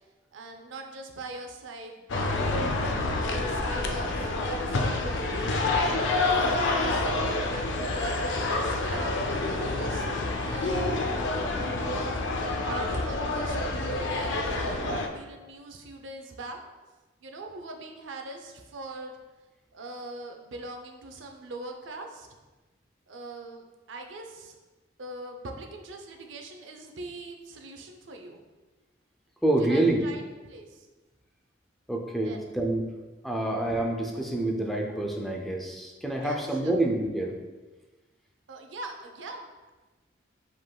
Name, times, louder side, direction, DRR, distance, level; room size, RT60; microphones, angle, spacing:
voice 1, 0.3-2.5 3.1-7.1 7.5-10.1 10.3-11.0 11.5-16.6 17.2-19.2 19.7-22.3 23.1-24.6 25.0-28.4 29.6-30.9 32.2-32.5 36.1-36.7 38.5-39.5, right 2 dB, 75° right, 4 dB, 0.5 m, -42 dB
sound 1, 2.1-15.1, left 2 dB, 70° left, 0.4 m, -28 dB
voice 2, 29.4-30.1 31.9-32.8 33.2-37.4, right 1 dB, ahead, 0 dB, 0.4 m, -27 dB
5.2 x 3.8 x 2.2 m, 1.2 s
head